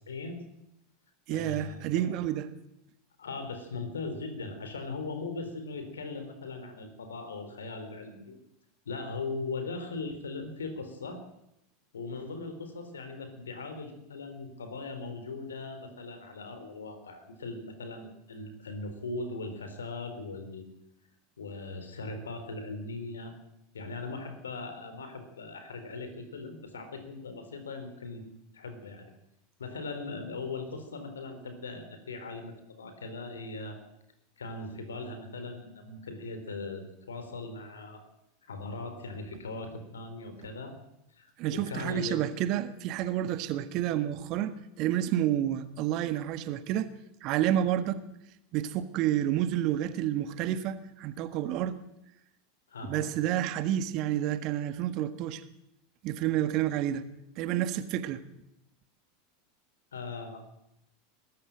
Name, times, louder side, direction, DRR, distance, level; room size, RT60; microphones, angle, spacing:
voice 1, 0.1-0.4 1.3-2.1 3.2-8.4 8.9-11.2 11.9-20.7 21.4-23.3 23.7-28.2 28.5-29.1 29.6-33.8 34.4-38.0 38.4-40.7 41.1-42.3 52.7-53.1 57.7-57.8 59.9-60.5, left 3 dB, 75° left, 8 dB, 4.2 m, -39 dB
voice 2, 1.3-2.4 41.4-46.9 47.2-48.0 48.5-51.8 52.9-55.4 56.0-57.0 57.4-58.2, right 11 dB, 50° right, 12 dB, 1.6 m, -29 dB
22.0 x 13.5 x 9.0 m, 0.82 s
figure-of-eight pair, 85°, 0 cm